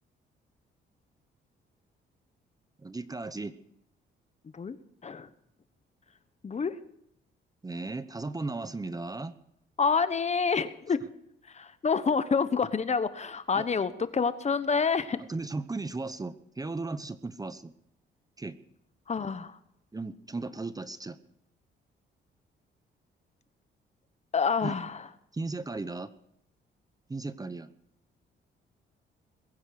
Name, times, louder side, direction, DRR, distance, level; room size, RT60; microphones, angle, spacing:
voice 1, 2.8-3.6 7.6-9.3 13.5-13.7 15.3-17.7 18.4-18.6 19.9-21.2 24.6-24.7 25.3-26.1 27.1-27.7, right 3 dB, 20° right, 13 dB, 0.9 m, -36 dB
voice 2, 6.4-6.8 9.8-11.0 11.5-15.2 19.1-19.6 24.3-25.1, left 5 dB, 35° left, 13 dB, 1.1 m, -28 dB
21.5 x 10.0 x 6.5 m, 0.76 s
cardioid pair, 90°, 20 cm